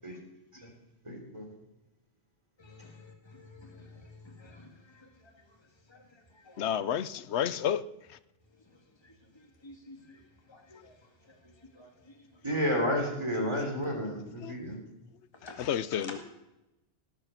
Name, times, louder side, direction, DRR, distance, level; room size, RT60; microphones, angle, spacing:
voice 1, 1.0-1.4 12.4-14.8, equal, 25° right, 3.5 m, -31 dB
voice 2, 2.6-6.7 8.7-12.4 14.7-14.8 15.3-15.7, left 2 dB, 25° left, 2.0 m, -54 dB
voice 3, 6.6-7.8 8.1-8.2 14.4-14.6 15.4-16.2, left 9 dB, 75° left, 0.9 m, -31 dB
17.5 x 8.5 x 5.9 m
omnidirectional pair, 1.2 m